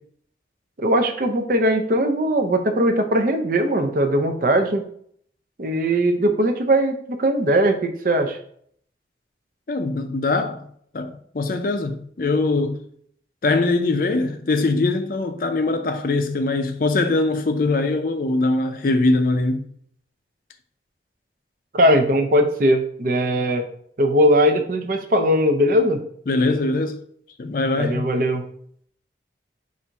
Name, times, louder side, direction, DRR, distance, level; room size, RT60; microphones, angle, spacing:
voice 1, 0.8-4.9 5.6-8.4 21.7-23.6 24.0-26.0 27.8-28.4, equal, 50° right, 0.5 m, -19 dB
voice 2, 9.7-10.7 10.9-12.8 13.4-19.7 26.3-27.0 27.4-28.0, left 2 dB, 50° left, 0.4 m, -22 dB
4.1 x 2.5 x 4.5 m
head